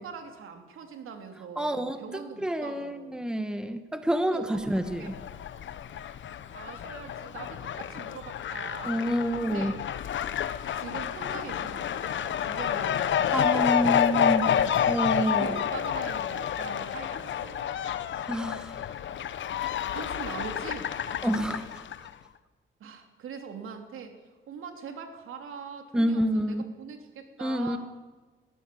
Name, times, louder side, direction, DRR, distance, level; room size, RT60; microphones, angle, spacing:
voice 1, 0.0-3.3 4.2-5.1 5.9-6.2 6.5-9.0 9.4-9.8 10.7-14.7 15.3-17.8 19.4-19.6 19.9-21.5 22.8-24.2 24.5-27.8, right 6 dB, 80° right, 5 dB, 3.1 m, -42 dB
voice 2, 1.6-5.1 8.8-9.7 13.3-14.5 14.9-15.5 18.3-18.8 21.2-21.8 25.9-26.7 27.4-27.8, equal, 5° right, 9 dB, 1.3 m, -28 dB
Fowl, 4.7-22.1, left 9 dB, 65° left, 1.1 m, -29 dB
21.0 x 15.5 x 8.5 m, 1.3 s
cardioid pair, 130°, 21 cm